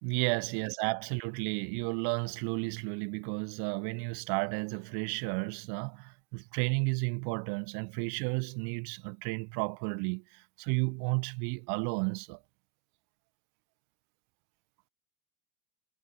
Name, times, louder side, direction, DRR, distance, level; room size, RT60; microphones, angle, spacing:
voice 1, 0.0-12.4, right 38 dB, 60° right, 1.8 m, -32 dB
hypercardioid pair, 105°, 43 cm